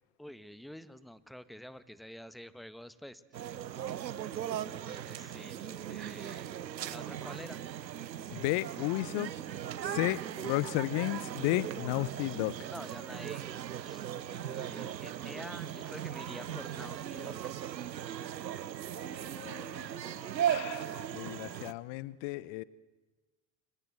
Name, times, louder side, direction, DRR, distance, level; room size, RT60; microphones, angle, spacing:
voice 1, 0.2-3.5 4.2-6.5 6.9-7.6 12.7-13.5 13.8-14.1 14.4-17.5, equal, ahead, 14 dB, 1.5 m, -48 dB
sound 1, 3.3-21.7, right 10 dB, 90° right, 0.8 m, -38 dB
voice 2, 8.3-9.3 9.8-12.5 18.9-22.6, left 19 dB, 60° left, 20 dB, 0.9 m, -34 dB
29.5 x 25.0 x 7.8 m, 1.2 s
hypercardioid pair, 65°, 50 cm